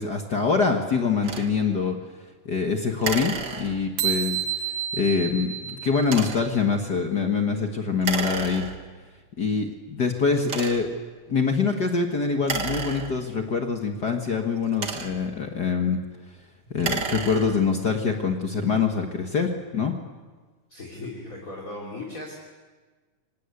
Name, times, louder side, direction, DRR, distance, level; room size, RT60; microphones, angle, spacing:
voice 1, 0.0-1.9 2.4-4.4 4.9-8.7 9.4-10.9 11.3-16.0 16.7-19.9, left 5 dB, 45° left, 3 dB, 1.5 m, -24 dB
sound 1, 1.2-1.5 3.0-4.1 6.0-6.6 8.0-9.0 9.7-9.8 10.4-11.0 12.4-13.5 14.5-15.4 16.7-17.8, right 5 dB, 40° right, 1.8 m, -32 dB
sound 2, 4.0-6.6, right 10 dB, 75° right, 2.6 m, -30 dB
voice 2, 20.7-22.4, left 2 dB, 25° left, -3 dB, 3.5 m, -37 dB
25.0 x 19.5 x 8.3 m, 1.4 s
omnidirectional pair, 3.5 m